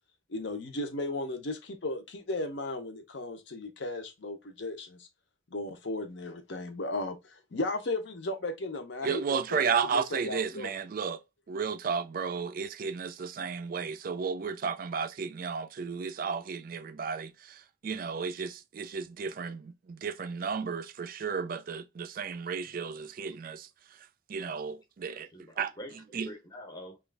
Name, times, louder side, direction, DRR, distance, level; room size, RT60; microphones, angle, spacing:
voice 1, 0.3-5.1 5.5-10.7, left 2 dB, 60° left, 0.7 m, -36 dB
voice 2, 9.0-11.2 11.5-23.7 24.3-25.3 25.6-25.7 26.1-26.3, right 6 dB, 45° right, 0.3 m, -33 dB
voice 3, 22.6-23.1 25.0-27.0, left 1 dB, 20° left, 0.7 m, -47 dB
3.0 x 2.3 x 3.3 m
head